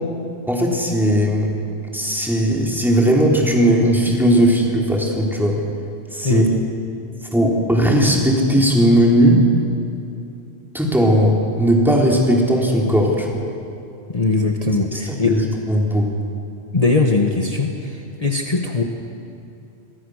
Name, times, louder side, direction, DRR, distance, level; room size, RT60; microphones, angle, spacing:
voice 1, 0.5-1.5 1.9-5.6 6.1-6.4 7.3-9.4 10.7-13.4 14.9-15.4 15.7-16.1, equal, ahead, -2 dB, 3.7 m, -17 dB
voice 2, 14.1-15.4 16.7-18.8, left 3 dB, 35° left, 2 dB, 1.5 m, -20 dB
27.0 x 22.5 x 6.5 m, 2.6 s
omnidirectional pair, 1.2 m